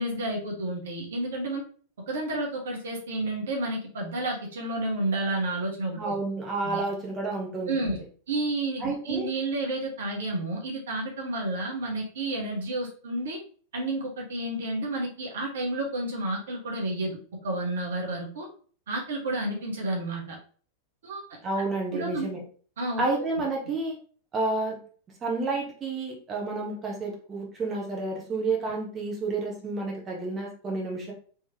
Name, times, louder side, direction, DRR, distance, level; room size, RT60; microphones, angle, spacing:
voice 1, 0.0-1.6 2.1-6.1 6.6-6.8 7.7-8.0 8.3-13.4 13.7-18.5 18.9-20.4 21.0-21.2 21.9-22.3 22.8-23.0, right 2 dB, 60° right, -1 dB, 1.1 m, -30 dB
voice 2, 6.0-8.0 8.8-9.3 21.4-22.4 23.0-24.0 24.3-24.8 25.2-31.1, right 3 dB, 25° right, -1 dB, 1.1 m, -30 dB
3.6 x 3.1 x 2.8 m, 0.42 s
figure-of-eight pair, 90°, 0 cm